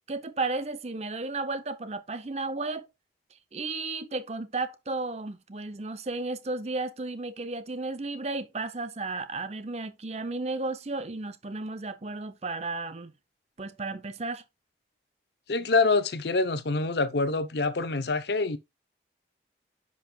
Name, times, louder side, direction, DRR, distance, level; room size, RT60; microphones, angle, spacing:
voice 1, 0.1-2.9 3.5-13.1 13.6-14.4, right 3 dB, 35° right, 0.7 m, -33 dB
voice 2, 15.5-18.6, left 3 dB, 65° left, 0.7 m, -26 dB
10.5 x 5.5 x 2.3 m
head